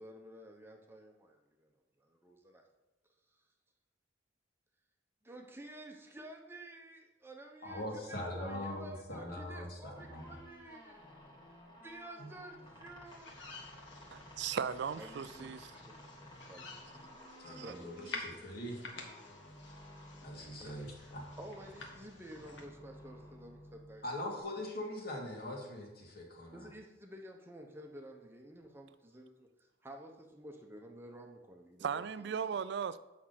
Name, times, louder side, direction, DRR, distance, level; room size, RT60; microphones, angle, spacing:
voice 1, 0.0-1.7 2.0-2.6 5.2-11.0 11.8-13.4 14.9-15.9 16.5-16.6 17.5-18.3 20.5-20.9 21.4-24.4 26.5-29.5 29.8-32.6, right 1 dB, 10° right, 0.9 m, -51 dB
voice 2, 7.6-10.3 12.2-12.3 17.4-18.8 20.2-21.3 24.0-26.7, left 1 dB, 55° left, 2.3 m, -42 dB
sound 1, 9.9-24.4, equal, 25° left, 1.8 m, -54 dB
sound 2, 13.0-22.7, left 3 dB, 70° left, 1.7 m, -51 dB
voice 3, 14.1-15.7 17.4-17.7 31.8-33.0, right 7 dB, 60° right, 0.4 m, -37 dB
8.7 x 6.2 x 5.9 m
head